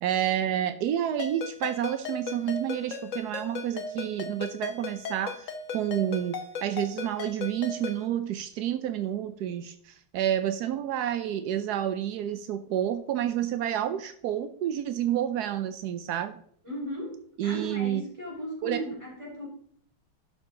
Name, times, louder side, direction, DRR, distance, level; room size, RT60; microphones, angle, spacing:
voice 1, 0.0-16.4 17.4-18.0 18.6-18.8, right 11 dB, 80° right, 11 dB, 0.9 m, -29 dB
Ringtone, 1.2-8.1, left 5 dB, 45° left, 1.1 m, -37 dB
voice 2, 16.6-17.2 17.4-19.5, equal, 15° right, -3 dB, 4.2 m, -36 dB
11.5 x 6.6 x 3.7 m, 0.63 s
omnidirectional pair, 2.3 m